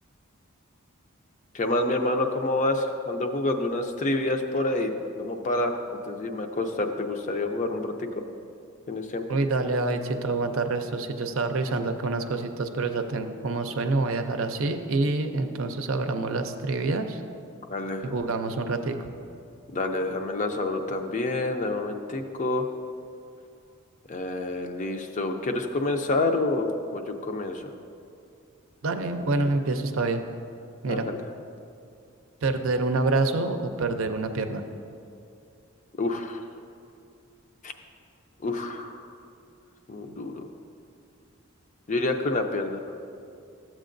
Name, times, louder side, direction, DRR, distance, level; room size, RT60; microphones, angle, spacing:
voice 1, 1.5-4.9 5.2-8.2 8.9-9.4 17.7-18.1 19.7-22.7 24.1-27.7 30.9-31.2 36.0-36.4 37.6-37.7 38.4-39.1 39.9-40.5 41.9-42.8, left 2 dB, 35° left, 5 dB, 0.5 m, -28 dB
voice 2, 9.3-17.2 18.0-19.1 28.8-30.2 30.8-31.1 32.4-34.6, right 3 dB, 70° right, 7 dB, 0.5 m, -27 dB
13.0 x 7.4 x 2.6 m, 2.5 s
head